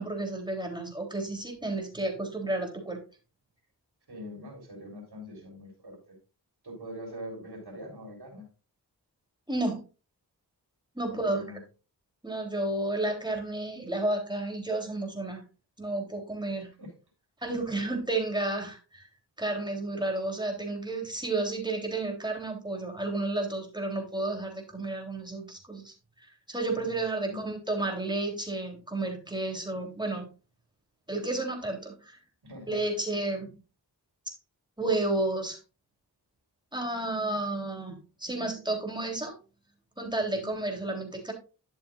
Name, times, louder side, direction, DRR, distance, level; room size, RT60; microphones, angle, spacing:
voice 1, 0.0-3.0 9.5-9.8 10.9-11.4 12.2-15.4 15.8-16.7 17.4-19.0 19.4-25.9 26.5-30.3 31.1-32.2 32.7-33.5 34.3-34.4 34.8-35.6 36.7-39.4 40.0-41.3, right 2 dB, 10° right, 2 dB, 3.4 m, -31 dB
voice 2, 4.1-6.2 6.6-8.5 11.1-11.6 16.5-16.9 17.4-17.6 26.7-27.0 27.3-27.4 32.4-32.8 40.2-40.5, equal, 65° right, 1 dB, 4.2 m, -44 dB
11.5 x 7.3 x 2.5 m, 0.32 s
cardioid pair, 40°, 42 cm